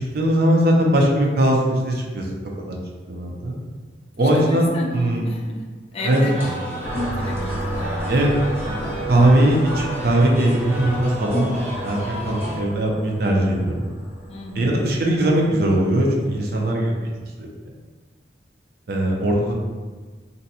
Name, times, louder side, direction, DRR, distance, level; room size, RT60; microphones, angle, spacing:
voice 1, 0.0-2.3 2.6-2.8 3.1-3.6 4.2-4.7 4.9-5.3 6.0-6.3 8.1-8.3 8.6-11.5 11.8-13.9 14.5-16.9 17.4-17.8 18.9-19.5, right 1 dB, 60° right, -1 dB, 0.6 m, -20 dB
voice 2, 4.2-5.6 5.9-6.8 7.1-8.1 14.3-14.8, left 2 dB, 35° left, 1 dB, 0.4 m, -33 dB
sound 1, 6.0-12.6, equal, 15° right, 0.8 m, -31 dB
sound 2, 6.8-16.4, right 1 dB, 80° left, 0.6 m, -33 dB
2.6 x 2.2 x 4.0 m, 1.4 s
head